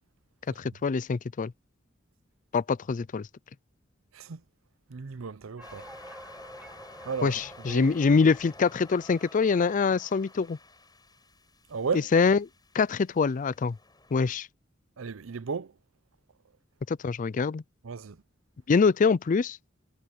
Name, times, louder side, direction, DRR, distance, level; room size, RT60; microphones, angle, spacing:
voice 1, 0.6-1.5 2.5-3.3 7.2-10.6 12.1-12.4 12.7-13.8 14.1-14.5 16.9-17.6 18.7-19.6, left 5 dB, 40° left, 0.4 m, -24 dB
voice 2, 4.9-5.9 7.0-7.4 7.7-7.9 11.7-12.1 15.0-15.7 17.8-18.2, right 5 dB, 90° right, 0.6 m, -34 dB
sound 1, 5.6-14.3, left 3 dB, 20° left, 7.0 m, -52 dB
sound 2, 5.6-10.4, right 1 dB, 10° right, 2.1 m, -50 dB
head